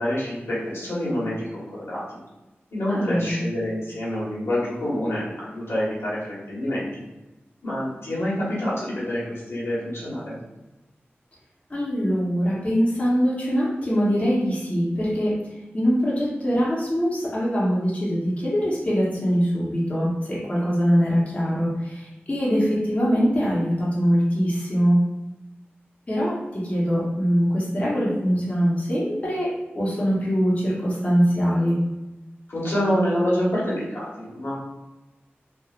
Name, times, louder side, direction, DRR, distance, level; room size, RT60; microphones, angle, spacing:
voice 1, 0.0-2.0 2.7-6.9 7.6-10.4 32.5-34.6, equal, 70° left, -7 dB, 1.1 m, -27 dB
voice 2, 2.9-3.4 11.7-15.4 15.7-25.0 26.1-29.5 29.7-31.8, equal, 30° left, -7 dB, 0.9 m, -23 dB
3.1 x 2.4 x 2.4 m, 1.0 s
wide cardioid pair, 60°, 4 cm